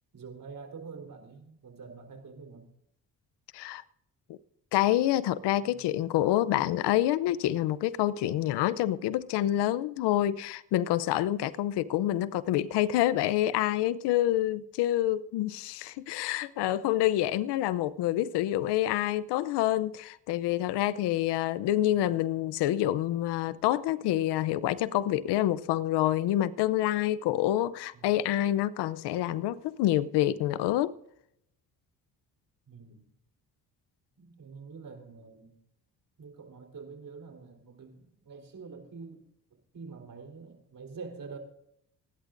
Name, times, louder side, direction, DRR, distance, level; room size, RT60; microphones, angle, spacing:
voice 1, 0.1-2.7 5.6-6.5 21.9-22.1 27.9-28.2 32.7-33.1 34.2-35.5 36.2-41.4, right 5 dB, 55° right, 4.0 m, -46 dB
voice 2, 4.7-30.9, left 13 dB, 85° left, 0.7 m, -27 dB
25.5 x 11.5 x 2.6 m
supercardioid pair, 70°, 40 cm